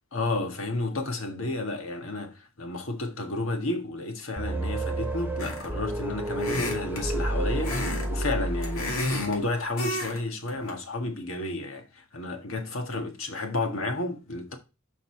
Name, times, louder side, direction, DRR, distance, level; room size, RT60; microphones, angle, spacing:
voice 1, 0.1-14.6, left 2 dB, 70° left, 1.7 m, -32 dB
sound 1, 4.4-9.4, right 1 dB, 10° right, 0.8 m, -31 dB
sound 2, 5.4-5.8 6.4-7.0 7.6-8.1 8.4-9.4 9.8-10.2 10.5-10.7, left 1 dB, 90° left, 2.5 m, -30 dB
6.8 x 5.3 x 4.4 m
head